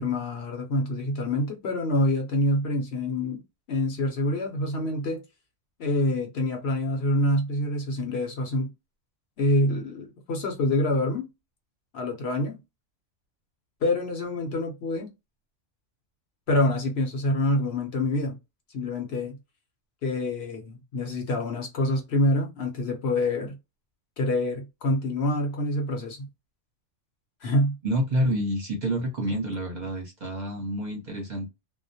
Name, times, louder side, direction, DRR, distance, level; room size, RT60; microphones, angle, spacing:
voice 1, 0.0-3.4 3.7-5.2 5.8-8.7 9.4-11.3 11.9-12.6 13.8-15.1 16.5-18.4 18.7-19.4 20.0-23.6 24.2-26.3 27.4-27.8, left 1 dB, 60° left, 0.9 m, -26 dB
voice 2, 27.8-31.5, equal, 40° right, 0.9 m, -28 dB
2.3 x 2.1 x 2.6 m
omnidirectional pair, 1.3 m